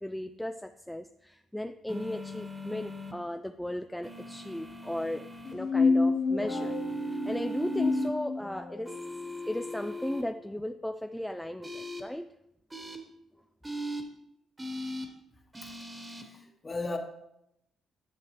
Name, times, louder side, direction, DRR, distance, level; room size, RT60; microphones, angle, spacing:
voice 1, 0.0-5.2 5.5-6.7 7.1-9.0 9.5-12.3, left 1 dB, 5° left, 0.3 m, -36 dB
sound 1, 1.9-3.1 4.0-5.5 6.5-8.1 8.8-10.2 11.6-12.0 12.7-13.0 13.6-14.0 14.6-15.1 15.5-16.2, right 1 dB, 15° right, 1.3 m, -38 dB
sound 2, 5.4-8.9, left 4 dB, 75° left, 0.9 m, -28 dB
voice 2, 16.1-17.0, left 3 dB, 25° left, 1.2 m, -37 dB
10.5 x 6.3 x 3.3 m
cardioid pair, 90°, 0 cm